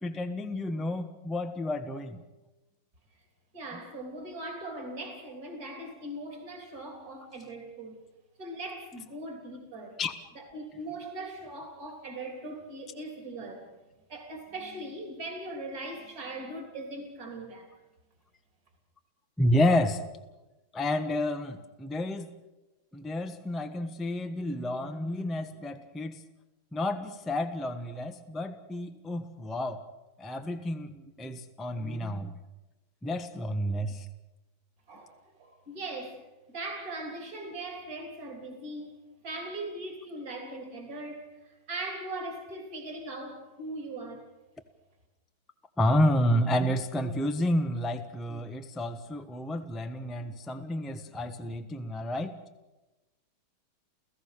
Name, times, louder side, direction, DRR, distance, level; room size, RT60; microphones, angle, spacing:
voice 1, 0.0-2.2 10.0-10.1 19.4-20.0 20.7-22.3 22.9-26.2 26.7-29.8 30.2-32.3 33.0-34.1 45.8-52.3, left 1 dB, ahead, 6 dB, 0.7 m, -30 dB
voice 2, 3.5-8.0 8.4-10.0 10.4-13.7 14.1-17.7 34.9-39.0 39.2-44.3, right 2 dB, 45° right, 3 dB, 3.8 m, -40 dB
29.5 x 16.0 x 6.7 m, 1.1 s
omnidirectional pair, 2.3 m